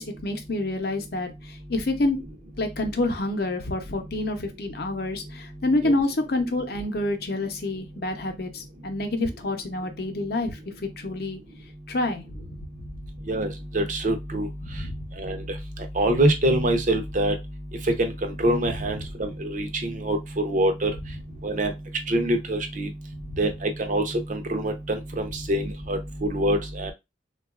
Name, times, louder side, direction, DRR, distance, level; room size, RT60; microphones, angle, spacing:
voice 1, 0.0-2.2 2.6-10.6 11.0-11.4 11.9-12.5 14.6-15.0 23.3-23.4, left 2 dB, 60° left, 0.7 m, -28 dB
voice 2, 13.3-14.5 15.2-15.4 15.9-17.4 18.0-20.9 21.4-21.7 22.1-22.9 23.4-26.9, right 1 dB, 45° right, 0.6 m, -25 dB
3.7 x 2.3 x 2.3 m
head